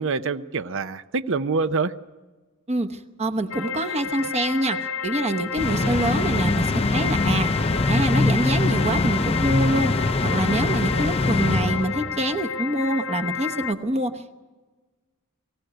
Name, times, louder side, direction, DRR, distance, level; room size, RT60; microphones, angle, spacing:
voice 1, 0.0-1.9, right 4 dB, 60° right, 12 dB, 0.7 m, -25 dB
voice 2, 2.7-7.5 7.9-14.2, right 1 dB, 30° right, 6 dB, 0.9 m, -26 dB
sound 1, 3.5-13.7, left 6 dB, 70° left, 1.0 m, -31 dB
sound 2, 5.6-12.3, left 2 dB, 25° left, 0.6 m, -23 dB
23.5 x 16.0 x 8.0 m, 1.2 s
head